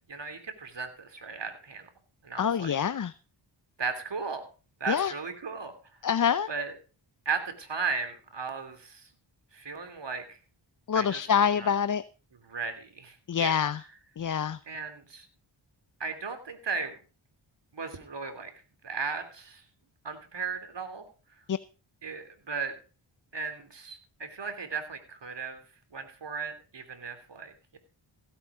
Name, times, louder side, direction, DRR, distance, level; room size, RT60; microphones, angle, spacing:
voice 1, 0.1-1.9 2.2-2.7 3.8-4.4 4.8-5.7 6.5-6.7 7.2-9.1 9.5-10.4 10.9-11.7 12.4-13.5 14.7-15.3 16.0-16.9 17.7-18.5 18.8-19.6 20.0-21.0 22.0-22.7 23.3-25.6 25.9-27.8, right 5 dB, 55° right, 8 dB, 3.2 m, -36 dB
voice 2, 2.4-3.1 4.9-5.1 6.0-6.5 10.9-12.0 13.3-13.8 14.2-14.6 21.5-21.6, left 8 dB, 40° left, 15 dB, 0.6 m, -26 dB
16.5 x 8.5 x 4.9 m, 0.37 s
cardioid pair, 50°, 49 cm